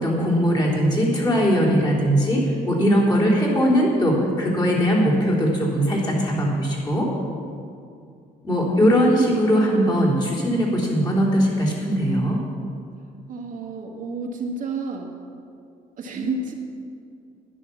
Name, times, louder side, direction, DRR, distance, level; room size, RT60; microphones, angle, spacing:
voice 1, 0.0-7.1 8.4-12.4, equal, 25° left, -4 dB, 3.8 m, -20 dB
voice 2, 13.3-15.1 16.0-16.5, right 3 dB, 55° right, 0 dB, 1.9 m, -30 dB
11.5 x 10.5 x 7.2 m, 2.4 s
cardioid pair, 110°, 17 cm